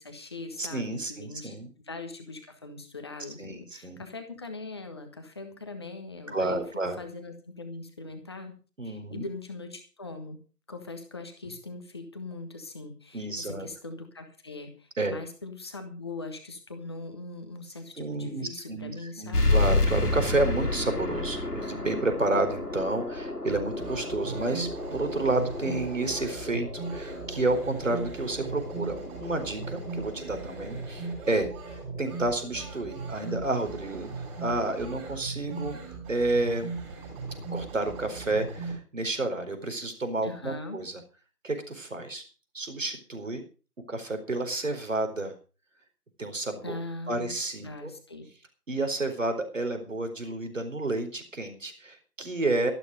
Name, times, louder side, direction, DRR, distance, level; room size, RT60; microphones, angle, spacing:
voice 1, 0.0-1.5 1.9-6.6 7.0-8.5 8.8-10.4 10.7-19.6 40.2-40.8 46.6-47.3 47.6-48.3, left 3 dB, 15° left, 6 dB, 1.4 m, -41 dB
voice 2, 0.6-1.7 3.4-4.0 6.3-7.0 8.8-9.2 13.1-13.7 15.0-15.2 18.0-34.1 34.4-35.8 36.1-36.7 37.5-41.0 41.4-42.2 42.5-43.4 43.9-45.3 46.2-46.8 47.1-47.9 48.7-52.7, right 2 dB, 50° right, 7 dB, 4.4 m, -30 dB
sound 1, 19.3-34.4, left 2 dB, 70° left, 2.6 m, -32 dB
sound 2, 23.5-38.7, right 4 dB, 10° right, 5.2 m, -38 dB
13.5 x 12.0 x 5.3 m, 0.36 s
figure-of-eight pair, 155°, 47 cm